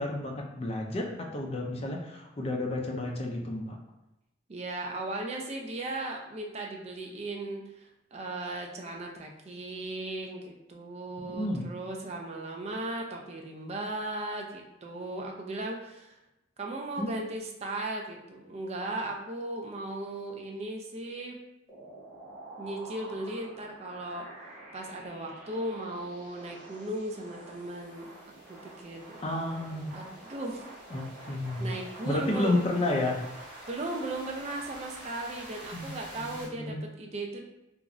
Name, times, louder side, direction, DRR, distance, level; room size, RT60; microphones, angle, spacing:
voice 1, 0.0-3.8 11.3-11.6 17.0-17.1 29.2-29.9 30.9-31.7 32.1-33.2 35.7-35.9 36.2-36.8, left 2 dB, 30° left, 1 dB, 0.4 m, -31 dB
voice 2, 4.5-16.2 16.6-21.4 22.6-24.3 24.7-28.1 28.5-29.2 29.9-30.7 31.6-32.7 33.7-37.4, right 2 dB, 35° right, 1 dB, 0.4 m, -37 dB
sound 1, 21.7-36.5, right 1 dB, 5° right, 0.8 m, -47 dB
3.0 x 2.4 x 2.5 m, 0.92 s
head